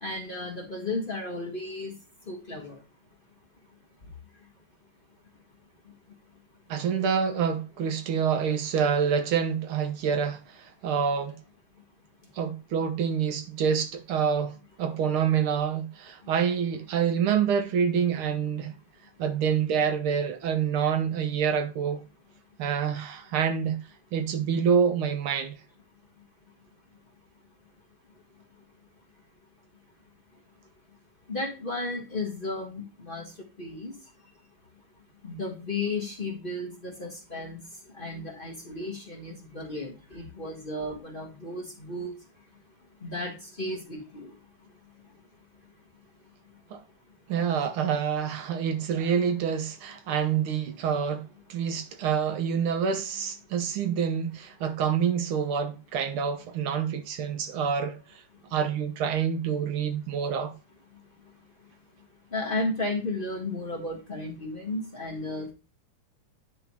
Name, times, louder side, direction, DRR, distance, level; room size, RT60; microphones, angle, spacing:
voice 1, 0.0-1.9 2.3-2.8 31.3-33.3 33.6-33.9 35.2-37.6 38.0-42.1 43.0-44.3 62.3-65.5, left 2 dB, 25° left, 1.4 m, -34 dB
voice 2, 6.7-11.4 12.4-18.7 19.2-22.0 22.6-23.8 24.1-25.6 46.7-46.8 47.3-58.0 58.5-60.5, right 7 dB, 75° right, 1.8 m, -27 dB
9.7 x 3.7 x 4.7 m
omnidirectional pair, 2.4 m